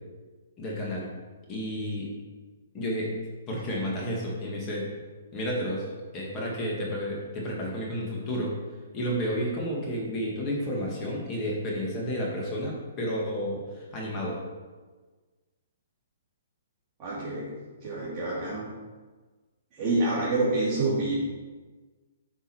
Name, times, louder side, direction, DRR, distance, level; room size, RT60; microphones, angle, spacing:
voice 1, 0.6-1.1 1.5-2.1 2.7-3.2 3.5-4.9 5.3-5.9 6.1-8.6 8.9-14.4, equal, 25° left, -3 dB, 2.0 m, -31 dB
voice 2, 17.0-17.5 17.8-18.7 19.8-21.2, right 2 dB, 25° right, -11 dB, 2.9 m, -27 dB
8.7 x 5.4 x 4.6 m, 1.3 s
hypercardioid pair, 155°, 0 cm